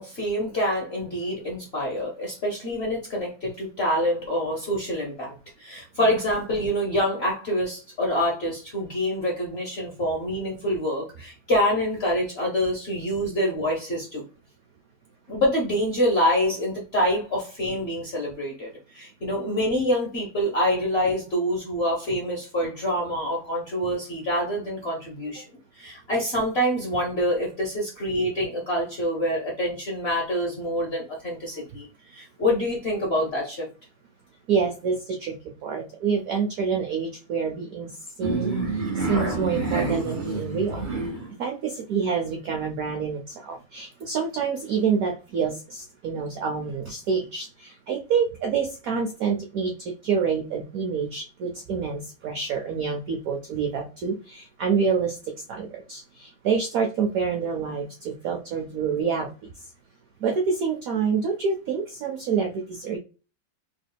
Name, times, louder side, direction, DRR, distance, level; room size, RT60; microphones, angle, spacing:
voice 1, 0.0-5.3 5.6-14.2 15.3-25.4 25.8-31.9 32.1-33.7, equal, 55° left, -2 dB, 0.7 m, -26 dB
voice 2, 34.5-35.4 35.6-37.9 38.2-38.6 39.0-40.9 41.4-55.2 55.5-59.3 60.2-63.0, right 6 dB, 85° right, 3 dB, 0.7 m, -27 dB
sound 1, 38.2-41.3, right 3 dB, 30° right, 1.1 m, -27 dB
3.4 x 3.2 x 2.2 m, 0.33 s
omnidirectional pair, 2.2 m